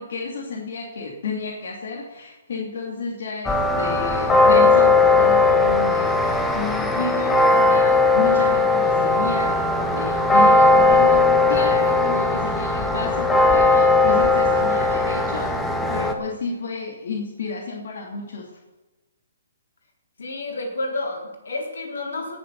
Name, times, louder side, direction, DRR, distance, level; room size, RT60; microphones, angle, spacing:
voice 1, 0.0-11.2 11.5-18.5, left 4 dB, 65° left, -2 dB, 2.6 m, -31 dB
sound 1, 3.4-16.1, left 3 dB, 10° left, 1.4 m, -18 dB
voice 2, 20.2-22.4, left 2 dB, 80° left, 1 dB, 3.9 m, -30 dB
17.5 x 7.0 x 6.9 m, 1.1 s
hypercardioid pair, 145°, 0 cm